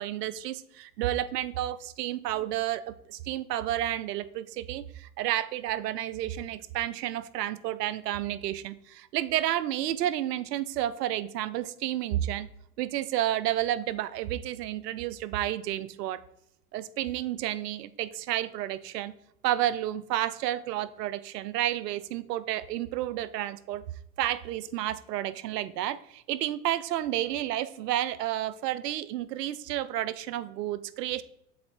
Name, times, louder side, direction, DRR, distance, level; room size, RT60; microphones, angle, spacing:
voice 1, 0.0-12.5 12.8-16.2 16.7-19.1 19.4-23.8 24.2-31.2, right 13 dB, 85° right, 16 dB, 0.6 m, -31 dB
7.5 x 4.1 x 4.3 m, 0.76 s
hypercardioid pair, 90°, 47 cm